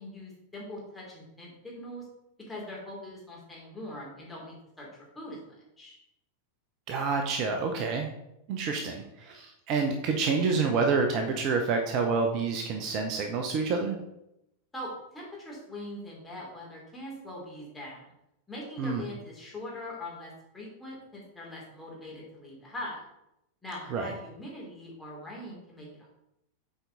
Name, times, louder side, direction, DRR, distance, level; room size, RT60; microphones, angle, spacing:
voice 1, 0.0-2.0 2.5-4.9 5.1-6.0 14.7-18.1 18.5-23.0 23.6-25.9, left 1 dB, 10° left, -4 dB, 2.9 m, -42 dB
voice 2, 6.9-8.1 8.5-14.0 18.8-19.0 23.9-24.1, right 4 dB, 40° right, 4 dB, 0.8 m, -28 dB
8.1 x 4.6 x 4.0 m, 0.84 s
figure-of-eight pair, 90°, 0 cm